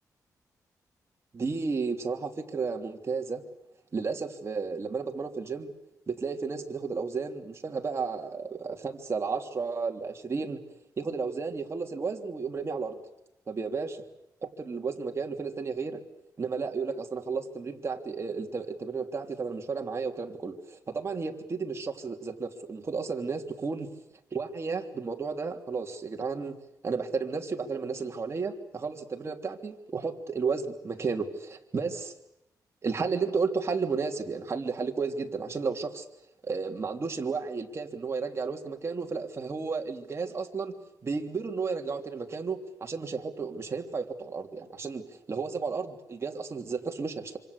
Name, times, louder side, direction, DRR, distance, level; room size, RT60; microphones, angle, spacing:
voice 1, 1.3-3.4 3.9-5.7 6.1-10.6 11.0-13.0 13.5-14.0 14.4-16.0 16.4-23.9 24.3-26.6 26.8-32.1 32.8-36.1 36.4-40.7 41.0-47.4, right 4 dB, 40° right, 3 dB, 3.2 m, -33 dB
26.5 x 25.5 x 8.4 m, 0.85 s
cardioid pair, 95°, 7 cm